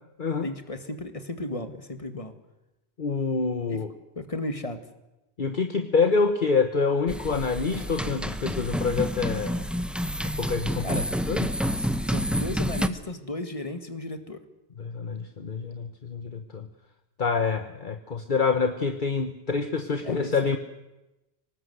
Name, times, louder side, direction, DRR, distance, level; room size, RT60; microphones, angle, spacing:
voice 1, 0.4-2.3 3.7-3.8 4.2-4.8 10.8-11.1 11.8-14.4 20.0-20.6, left 2 dB, 35° left, 8 dB, 2.1 m, -35 dB
voice 2, 3.0-3.9 5.4-9.6 10.4-11.0 11.3-11.5 14.8-16.7 17.2-20.6, left 4 dB, 50° left, 8 dB, 1.4 m, -26 dB
sound 1, 7.1-12.9, equal, ahead, 1.0 m, -29 dB
24.5 x 19.5 x 8.0 m, 0.96 s
omnidirectional pair, 1.1 m